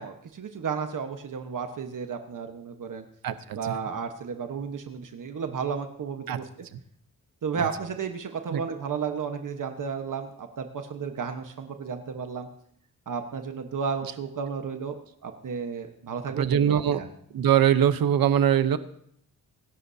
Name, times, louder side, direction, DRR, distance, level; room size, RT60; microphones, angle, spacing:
voice 1, 0.0-3.0 3.5-6.7 7.4-12.5 13.1-17.1, right 6 dB, 65° right, 5 dB, 1.3 m, -33 dB
voice 2, 3.2-3.6 6.3-6.4 8.5-8.6 16.4-17.0 17.3-18.8, right 9 dB, 85° right, 12 dB, 0.9 m, -22 dB
24.5 x 12.0 x 2.8 m, 0.68 s
wide cardioid pair, 110°, 34 cm